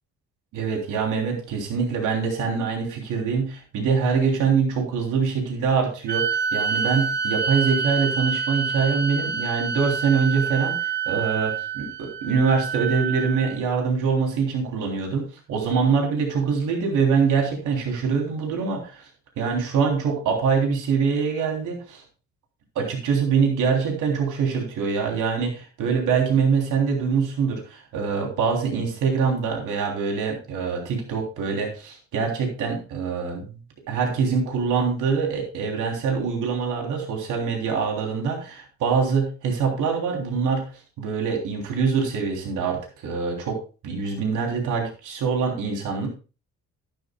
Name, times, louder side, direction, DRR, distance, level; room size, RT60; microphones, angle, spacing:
voice 1, 0.5-19.1 19.4-22.0 22.7-33.6 33.9-46.1, right 5 dB, 85° right, 1 dB, 3.3 m, -24 dB
sound 1, 6.1-13.6, right 6 dB, 35° right, 2.6 m, -27 dB
12.0 x 11.0 x 2.3 m, 0.33 s
cardioid pair, 90°, 30 cm